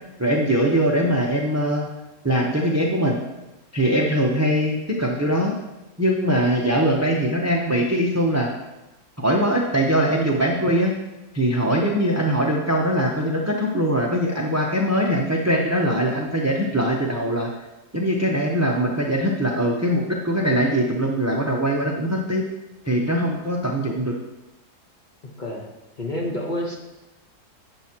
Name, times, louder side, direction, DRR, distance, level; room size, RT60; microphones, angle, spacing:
voice 1, 0.2-1.9 2.2-3.2 3.7-5.6 6.0-8.5 9.2-10.9 11.3-17.5 17.9-22.4 22.8-24.2, equal, 20° right, 0 dB, 0.5 m, -22 dB
voice 2, 25.2-25.7 26.0-26.8, left 1 dB, 35° left, 0 dB, 1.0 m, -29 dB
10.0 x 7.5 x 2.9 m, 1.0 s
omnidirectional pair, 1.7 m